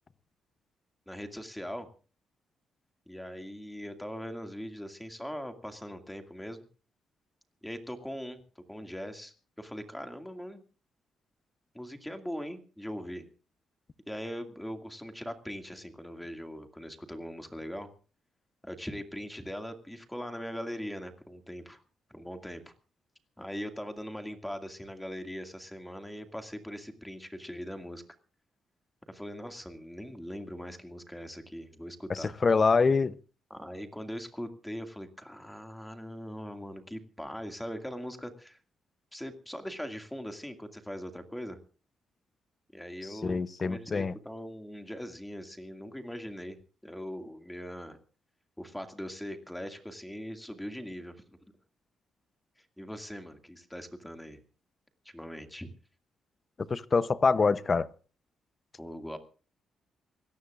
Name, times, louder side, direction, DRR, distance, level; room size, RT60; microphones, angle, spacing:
voice 1, 1.1-1.9 3.1-6.7 7.6-10.6 11.7-13.3 14.1-17.9 18.6-21.8 22.1-22.7 23.4-28.0 29.1-32.4 33.5-38.6 39.1-41.6 42.7-48.0 48.6-51.4 52.6-54.4 55.0-55.7 58.8-59.2, equal, 5° left, 2.2 m, -41 dB
voice 2, 32.1-33.1 43.2-44.1 56.7-57.9, left 4 dB, 25° left, 0.7 m, -25 dB
26.0 x 17.5 x 2.5 m
cardioid pair, 155°, 0 cm